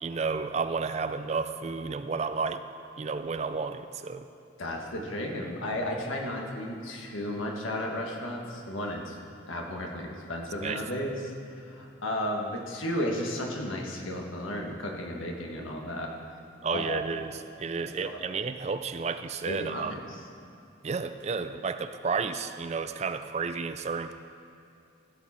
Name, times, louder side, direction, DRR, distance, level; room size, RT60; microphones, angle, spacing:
voice 1, 0.0-2.6 3.0-4.3 10.6-10.8 16.6-19.9 20.8-24.1, right 5 dB, 35° right, 10 dB, 0.3 m, -32 dB
voice 2, 4.6-9.2 9.4-11.2 11.5-16.1 16.7-17.0 17.8-18.2 19.5-20.0, left 1 dB, 85° left, 0 dB, 1.5 m, -34 dB
15.5 x 7.3 x 4.3 m, 2.5 s
head